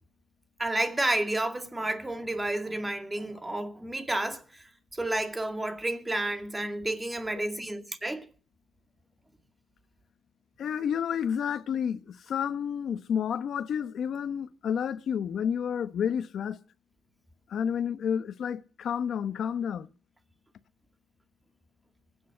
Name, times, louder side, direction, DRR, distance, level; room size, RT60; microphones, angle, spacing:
voice 1, 0.6-8.3, right 1 dB, 15° right, 2.1 m, -31 dB
voice 2, 10.6-16.6 17.5-19.9, left 8 dB, 65° left, 1.2 m, -30 dB
25.5 x 9.4 x 4.6 m
cardioid pair, 105°, 0 cm